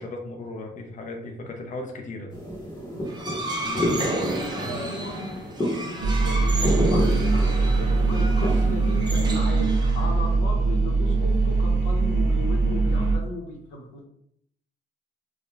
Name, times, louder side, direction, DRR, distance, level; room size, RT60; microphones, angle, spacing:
voice 1, 0.0-2.3 3.6-3.9 4.6-4.9, left 2 dB, 40° left, 2 dB, 0.5 m, -37 dB
sound 1, 2.3-9.4, equal, 25° left, 0.9 m, -30 dB
voice 2, 2.9-3.5 4.7-14.0, left 2 dB, 90° left, 0 dB, 0.7 m, -37 dB
sound 2, 3.1-10.3, right 2 dB, 20° right, 0.5 m, -33 dB
sound 3, 6.0-13.2, right 3 dB, 80° right, 0.6 m, -22 dB
2.2 x 2.1 x 3.1 m, 0.71 s
cardioid pair, 90°, 20 cm